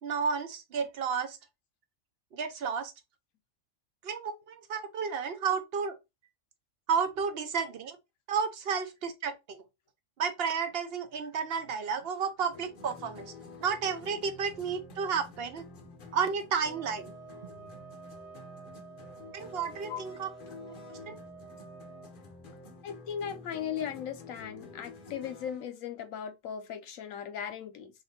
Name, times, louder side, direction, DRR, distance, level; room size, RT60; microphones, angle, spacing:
voice 1, 0.0-1.4 2.3-2.9 4.0-6.0 6.9-8.0 8.3-9.6 10.2-13.3 13.6-15.6 16.1-17.1 19.3-20.3 21.1-21.2, right 6 dB, 60° right, 0.8 m, -32 dB
sound 1, 12.5-25.6, left 3 dB, 50° left, 0.8 m, -49 dB
sound 2, 16.7-22.1, right 6 dB, 90° right, 1.2 m, -50 dB
voice 2, 22.8-27.9, left 8 dB, 80° left, 1.0 m, -37 dB
2.6 x 2.5 x 4.0 m
omnidirectional pair, 1.4 m